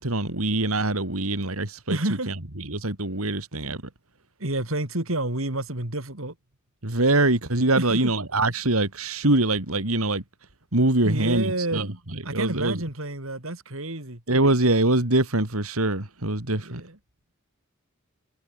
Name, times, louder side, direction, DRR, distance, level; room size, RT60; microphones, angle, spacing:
voice 1, 0.0-2.0 2.3-3.8 6.8-10.2 10.7-12.8 14.3-16.8, right 2 dB, 85° right, 3.5 m, -24 dB
voice 2, 1.9-2.3 4.4-6.3 7.7-8.1 11.0-11.8 12.2-14.2 16.6-17.0, right 2 dB, 70° right, 3.6 m, -29 dB
head